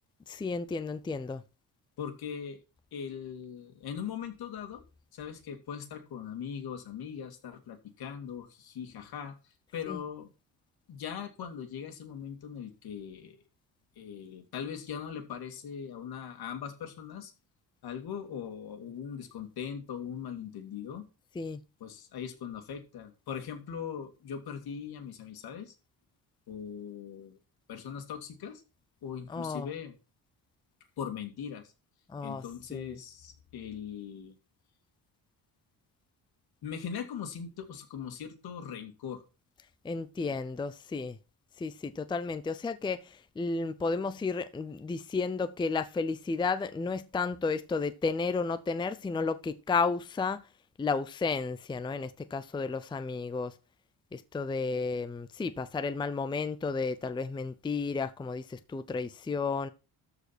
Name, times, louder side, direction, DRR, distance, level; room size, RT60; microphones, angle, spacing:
voice 1, 0.3-1.4 9.9-10.0 21.4-21.6 29.3-29.7 32.1-32.4 32.7-32.9 39.8-41.2 41.6-50.4 50.8-53.5 54.1-59.7, left 4 dB, 10° left, 0.5 m, -32 dB
voice 2, 2.0-2.6 2.9-4.8 5.1-10.3 10.9-13.4 14.0-17.3 17.8-21.1 21.8-25.7 26.5-27.4 27.7-28.6 29.0-30.0 31.0-31.6 32.2-34.3 36.6-39.2, left 8 dB, 70° left, 2.6 m, -40 dB
13.5 x 5.0 x 6.2 m
cardioid pair, 155°, 38 cm